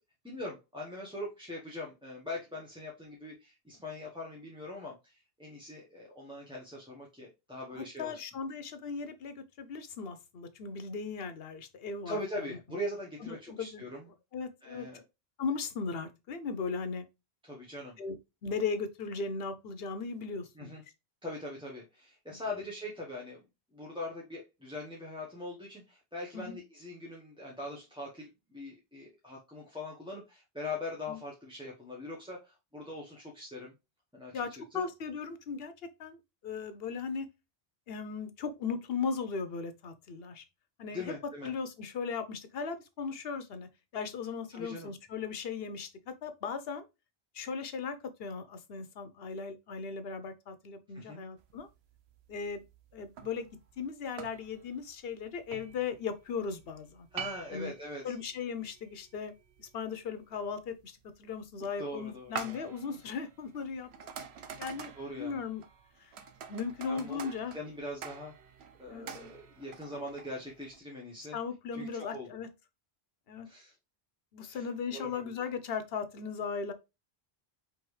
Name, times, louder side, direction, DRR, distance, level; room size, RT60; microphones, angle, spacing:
voice 1, 0.2-8.2 12.0-14.0 14.6-15.0 17.4-18.0 20.6-20.8 21.2-23.4 23.7-33.7 34.1-34.4 34.7-34.8 40.9-41.5 44.5-44.9 50.9-51.2 57.1-58.1 61.8-62.6 64.9-65.4 66.9-68.3 68.8-71.4 71.7-72.3 73.4-73.7 74.5-74.7 74.9-75.3, left 1 dB, 5° right, 0.9 m, -42 dB
voice 2, 7.7-12.2 12.5-12.6 13.2-13.8 14.3-14.9 15.4-17.0 18.0-18.2 18.4-20.8 22.3-22.4 26.3-26.6 31.1-31.2 34.3-35.7 36.0-37.3 37.9-40.4 40.8-41.1 41.4-46.9 47.3-51.7 52.3-52.6 52.9-53.5 53.8-57.1 57.5-57.7 58.0-59.3 59.6-63.9 64.6-65.6 66.0-66.1 66.5-67.5 68.9-69.3 71.3-72.5 73.3-73.5 74.3-76.7, left 5 dB, 70° left, 0.9 m, -37 dB
sound 1, 51.4-70.8, right 7 dB, 90° right, 0.9 m, -48 dB
5.0 x 3.1 x 3.1 m
omnidirectional pair, 1.0 m